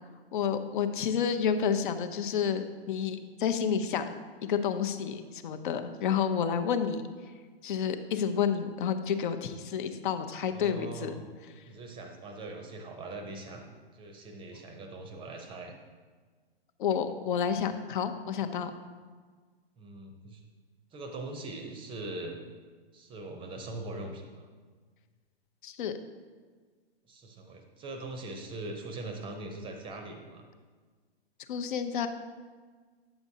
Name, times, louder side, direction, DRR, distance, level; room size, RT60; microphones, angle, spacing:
voice 1, 0.3-4.1 4.4-7.0 7.6-11.1 16.8-18.7 25.6-25.9 31.5-32.1, left 7 dB, 55° left, 8 dB, 0.7 m, -30 dB
voice 2, 10.5-11.2 11.7-13.7 13.9-15.8 19.8-20.4 20.9-22.4 22.9-24.5 27.1-30.5, right 2 dB, 15° right, 5 dB, 0.6 m, -41 dB
8.9 x 6.9 x 2.7 m, 1.5 s
hypercardioid pair, 120°, 31 cm